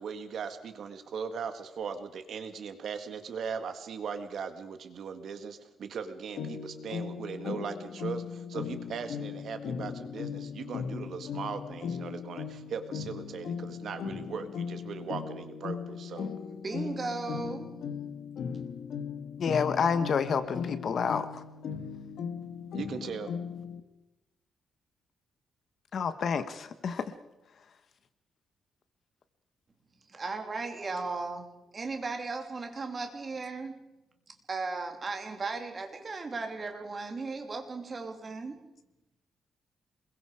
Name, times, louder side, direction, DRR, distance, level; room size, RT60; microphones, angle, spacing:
voice 1, 0.0-16.3 22.7-23.3, right 6 dB, 55° right, 8 dB, 2.0 m, -39 dB
sound 1, 6.4-23.8, left 6 dB, 65° left, 1.7 m, -38 dB
voice 2, 16.5-17.7 30.1-31.5 31.7-33.9 34.5-38.6, right 3 dB, 30° right, 4 dB, 2.9 m, -36 dB
voice 3, 19.4-21.4 25.9-27.1, left 6 dB, 45° left, 11 dB, 1.4 m, -29 dB
28.0 x 22.0 x 5.0 m, 0.96 s
cardioid pair, 160°, 0 cm